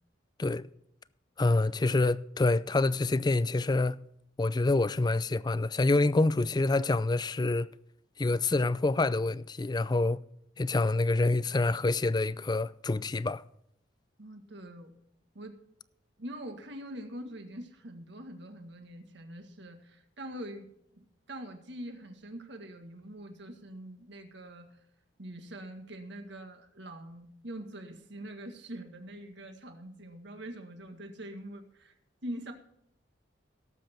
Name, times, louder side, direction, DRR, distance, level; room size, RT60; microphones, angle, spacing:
voice 1, 1.4-4.0 4.4-7.7 8.2-10.2 10.6-13.4, left 2 dB, 20° left, 0.4 m, -27 dB
voice 2, 14.2-14.9 15.4-15.6 16.2-24.8 25.2-31.9 32.2-32.5, right 1 dB, 65° right, 1.8 m, -44 dB
17.5 x 7.9 x 4.5 m
head